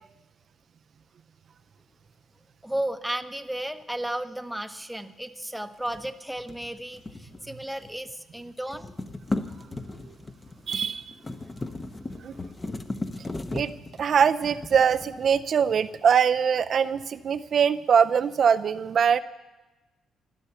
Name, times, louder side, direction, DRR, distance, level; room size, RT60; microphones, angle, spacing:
voice 1, 2.6-9.1, right 1 dB, ahead, 7 dB, 0.9 m, -34 dB
sound 1, 5.8-8.1 8.4-15.7, left 2 dB, 25° left, 0.9 m, -37 dB
voice 2, 10.7-11.1 12.2-12.4 13.5-13.7 14.0-19.2, right 7 dB, 55° right, 9 dB, 0.4 m, -22 dB
15.5 x 11.5 x 6.9 m, 1.1 s
cardioid pair, 90°, 0 cm